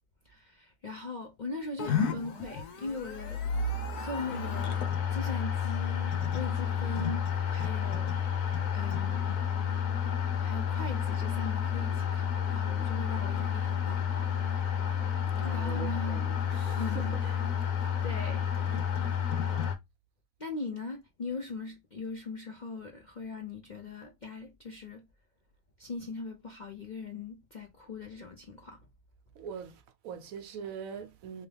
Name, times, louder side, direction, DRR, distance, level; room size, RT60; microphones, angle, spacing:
voice 1, 0.2-3.5 4.0-7.2 7.5-8.3 8.7-9.4 10.4-14.5 15.4-16.2 16.8-17.2 18.0-18.5 20.4-25.0 25.8-28.8, left 3 dB, 50° left, 0.5 m, -40 dB
sound 1, 1.8-19.8, left 7 dB, 90° left, 1.4 m, -30 dB
voice 2, 15.3-17.5 17.8-17.9 29.4-31.5, right 7 dB, 70° right, 1.0 m, -43 dB
3.5 x 3.0 x 3.3 m
omnidirectional pair, 1.6 m